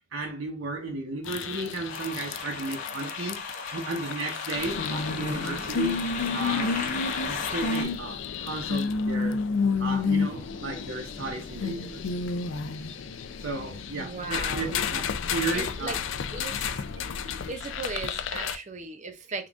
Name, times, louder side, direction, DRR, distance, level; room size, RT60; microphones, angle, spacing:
voice 1, 0.1-3.4 3.7-6.0 6.3-6.8 7.3-9.4 9.8-12.2 13.4-16.0 17.0-17.1 18.3-18.5, right 3 dB, 70° right, 0.9 m, -34 dB
sound 1, 1.2-18.6, left 5 dB, 60° left, 0.4 m, -31 dB
sound 2, 1.9-7.8, left 4 dB, 35° left, 1.0 m, -36 dB
voice 2, 13.9-14.7 15.5-16.0 16.3-16.8 17.5-19.5, right 3 dB, 35° right, 0.6 m, -37 dB
3.7 x 2.5 x 3.4 m
head